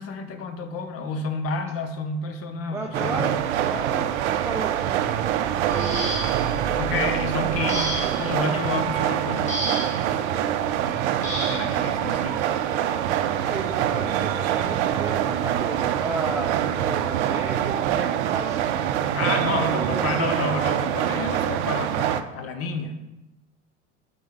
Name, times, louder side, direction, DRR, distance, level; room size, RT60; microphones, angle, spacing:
voice 1, 0.0-3.3 6.8-11.1 11.5-12.6 19.1-23.0, left 4 dB, 40° left, 8 dB, 1.0 m, -30 dB
voice 2, 2.7-6.2 6.6-7.4 13.1-19.1 19.6-20.4, right 3 dB, 10° right, 0 dB, 0.5 m, -34 dB
sound 1, 2.9-22.2, right 10 dB, 65° right, 0.6 m, -25 dB
sound 2, 5.7-6.6 7.7-8.3 9.5-10.1 11.2-11.7 12.9-13.0 13.6-13.8, equal, 20° left, 2.1 m, -31 dB
sound 3, 10.7-19.2, right 3 dB, 40° right, 1.1 m, -44 dB
8.5 x 4.1 x 3.9 m, 0.96 s
hypercardioid pair, 80°, 38 cm